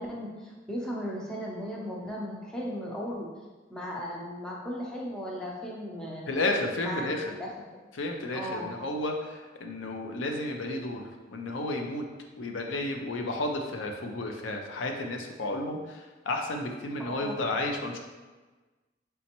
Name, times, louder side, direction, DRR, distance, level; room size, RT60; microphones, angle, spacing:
voice 1, 0.0-3.3 3.7-6.2 6.8-7.5 8.3-8.7 17.0-17.4, equal, 5° left, -4 dB, 0.6 m, -36 dB
voice 2, 6.3-7.2 7.9-12.0 12.4-18.0, left 2 dB, 85° left, 2 dB, 0.5 m, -32 dB
4.2 x 3.4 x 2.9 m, 1.3 s
head